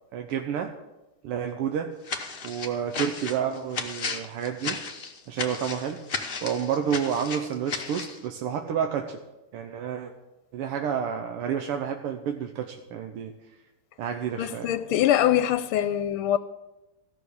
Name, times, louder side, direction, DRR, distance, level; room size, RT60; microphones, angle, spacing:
voice 1, 0.1-0.8 1.2-1.9 2.4-4.8 5.3-6.0 6.4-9.2 9.5-10.1 10.5-13.3 14.0-14.7, right 8 dB, 85° right, 1.8 m, -30 dB
sound 1, 2.0-8.2, left 4 dB, 50° left, 0.6 m, -34 dB
voice 2, 14.4-16.4, left 11 dB, 80° left, 1.4 m, -23 dB
14.5 x 6.3 x 8.5 m
omnidirectional pair, 2.4 m